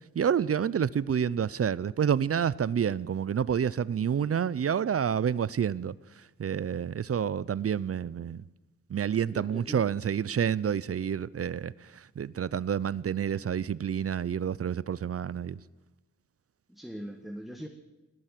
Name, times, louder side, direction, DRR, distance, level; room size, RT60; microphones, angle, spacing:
voice 1, 0.1-5.9 6.4-8.4 8.9-15.6, right 8 dB, 50° right, 0.6 m, -29 dB
voice 2, 9.3-9.9 16.7-17.7, equal, ahead, 1.8 m, -41 dB
21.0 x 18.5 x 7.6 m
wide cardioid pair, 95°, 29 cm